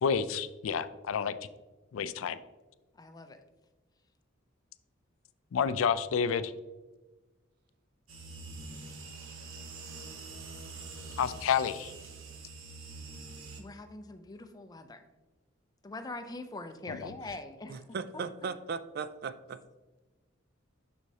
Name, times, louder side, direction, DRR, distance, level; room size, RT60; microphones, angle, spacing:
voice 1, 0.0-1.3 1.9-2.4 5.5-6.5 11.2-11.9 16.9-17.1, left 7 dB, 80° left, 14 dB, 0.4 m, -29 dB
voice 2, 2.9-3.4 13.0-13.1 13.6-15.1 15.8-17.9 18.1-18.2, left 2 dB, 20° left, 8 dB, 0.4 m, -43 dB
sound 1, 8.1-13.6, right 3 dB, 85° right, 0.9 m, -45 dB
voice 3, 17.7-19.6, right 5 dB, 50° right, 13 dB, 0.3 m, -37 dB
6.3 x 6.2 x 2.8 m, 1.2 s
head